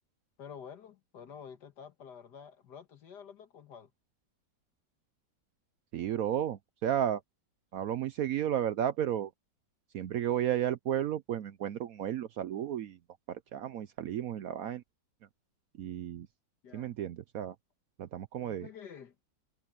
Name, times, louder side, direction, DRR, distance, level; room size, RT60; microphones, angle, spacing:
voice 1, 0.4-3.9 16.6-16.9 18.4-19.2, left 7 dB, 60° left, 2.1 m, -49 dB
voice 2, 5.9-7.2 7.7-9.3 9.9-13.0 13.3-14.8 15.8-16.3 16.7-17.5 18.0-18.7, right 10 dB, 70° right, 0.8 m, -33 dB
omnidirectional pair, 2.1 m